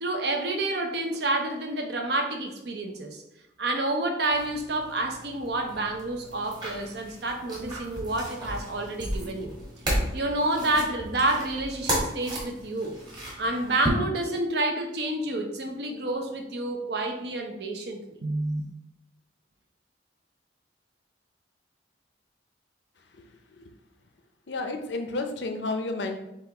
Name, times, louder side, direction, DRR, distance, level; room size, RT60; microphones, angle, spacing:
voice 1, 0.0-3.2 3.6-9.5 10.1-12.9 13.4-18.6, right 2 dB, 60° right, 4 dB, 0.7 m, -29 dB
sound 1, 4.3-13.9, equal, 25° right, 1.4 m, -34 dB
voice 2, 24.5-26.2, left 2 dB, 70° left, 6 dB, 0.6 m, -31 dB
7.0 x 2.4 x 2.9 m, 0.88 s
head